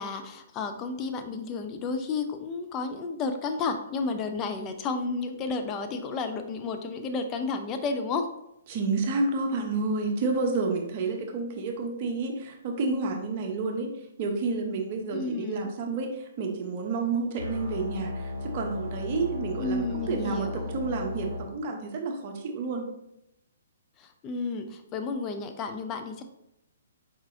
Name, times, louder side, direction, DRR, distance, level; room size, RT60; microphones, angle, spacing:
voice 1, 0.0-8.3 15.1-15.7 19.6-20.7 24.0-26.2, left 4 dB, 25° left, 6 dB, 0.5 m, -32 dB
voice 2, 8.7-13.9 14.2-16.1 16.4-22.9, right 3 dB, 40° right, 2 dB, 0.9 m, -30 dB
sound 1, 17.4-21.4, left 2 dB, 65° right, 0.9 m, -35 dB
4.6 x 4.0 x 2.7 m, 0.82 s
figure-of-eight pair, 125°, 0 cm